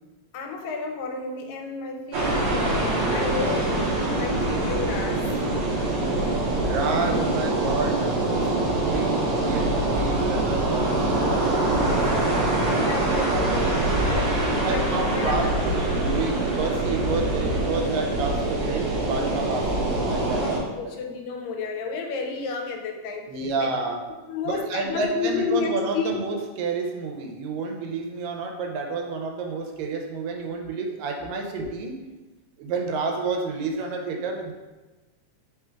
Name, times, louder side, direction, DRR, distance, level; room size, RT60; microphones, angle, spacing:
voice 1, 0.3-5.6 11.8-15.5 15.8-15.9 20.4-23.3 23.6-23.8 24.3-26.2, left 4 dB, 85° left, 3 dB, 2.2 m, -32 dB
sound 1, 2.1-20.6, right 2 dB, 65° right, 1.7 m, -24 dB
voice 2, 6.6-11.3 13.6-14.0 14.6-20.9 23.3-24.1 24.5-32.1 32.6-34.5, right 3 dB, 85° right, 2 dB, 2.3 m, -30 dB
5.1 x 2.3 x 4.4 m, 1.2 s
omnidirectional pair, 3.9 m